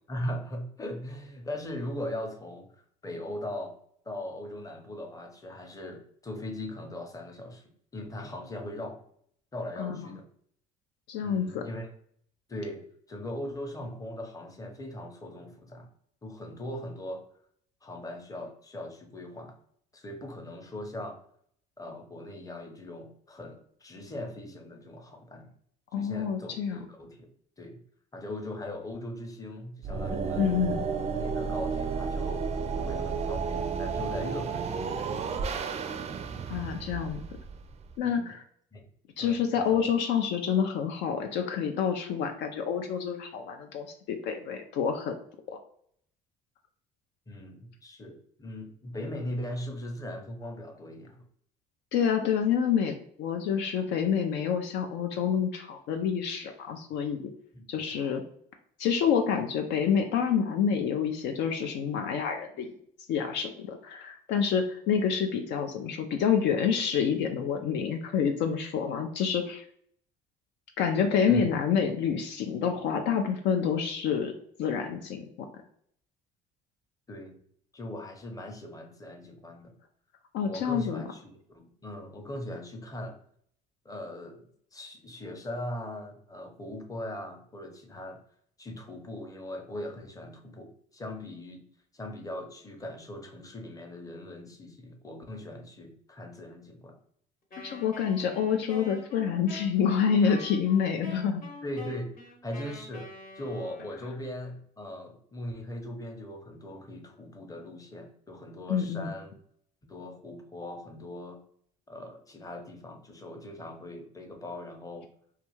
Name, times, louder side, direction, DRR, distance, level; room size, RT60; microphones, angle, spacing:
voice 1, 0.1-3.7 4.0-7.6 7.9-9.0 9.5-10.3 11.2-11.9 12.5-15.9 16.2-17.3 17.8-19.5 19.9-21.2 21.8-25.5 26.0-27.3 27.6-27.8 28.1-30.5 31.2-35.3 38.0-38.3 38.7-38.8 39.2-39.8 47.3-51.2 57.5-57.7 71.3-71.5 77.1-77.4 77.7-79.7 80.5-83.1 83.8-84.4 84.7-88.2 88.6-91.6 91.9-96.9 101.6-102.1 102.4-103.1 103.3-109.3 109.9-111.4 111.9-115.1, left 1 dB, 20° left, 3 dB, 0.7 m, -39 dB
voice 2, 11.1-11.6 25.9-26.8 30.4-30.8 36.5-37.2 38.0-38.4 39.2-45.2 45.5-45.6 51.9-57.2 57.7-58.2 58.8-62.7 63.1-69.7 70.8-74.3 74.6-75.5 80.3-81.0 97.6-101.4 108.7-109.1, left 7 dB, 65° left, 5 dB, 0.4 m, -28 dB
sound 1, 29.8-37.9, right 5 dB, 35° right, 0.4 m, -32 dB
Wind instrument woodwind instrument, 97.5-104.3, left 3 dB, 45° left, 0.9 m, -46 dB
2.4 x 2.2 x 3.0 m, 0.65 s
supercardioid pair, 65°, 19 cm